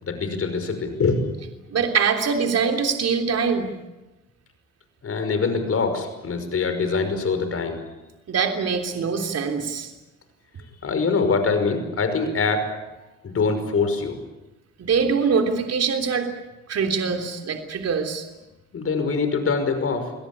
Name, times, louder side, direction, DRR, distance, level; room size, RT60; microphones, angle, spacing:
voice 1, 0.0-1.2 5.0-7.8 10.8-12.7 13.2-14.2 18.7-20.1, left 4 dB, 50° left, 8 dB, 5.8 m, -24 dB
voice 2, 1.7-3.7 8.3-9.9 14.8-16.3 16.7-18.2, right 5 dB, 55° right, 4 dB, 3.4 m, -23 dB
26.5 x 18.0 x 10.0 m, 1.0 s
cardioid pair, 90°, 30 cm